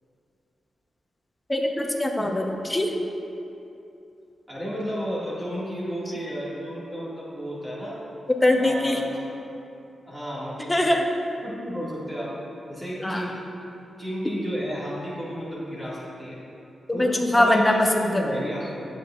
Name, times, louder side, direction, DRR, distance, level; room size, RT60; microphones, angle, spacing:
voice 1, 1.5-2.9 8.4-9.0 10.7-11.1 13.0-13.3 16.9-18.3, left 1 dB, 15° left, 1 dB, 0.9 m, -22 dB
voice 2, 4.5-8.0 8.6-9.1 10.1-10.8 11.4-12.3 12.7-13.4 14.0-16.4 16.9-18.9, equal, 10° right, -8 dB, 2.0 m, -32 dB
11.5 x 8.6 x 2.5 m, 2.7 s
wide cardioid pair, 110°, 0 cm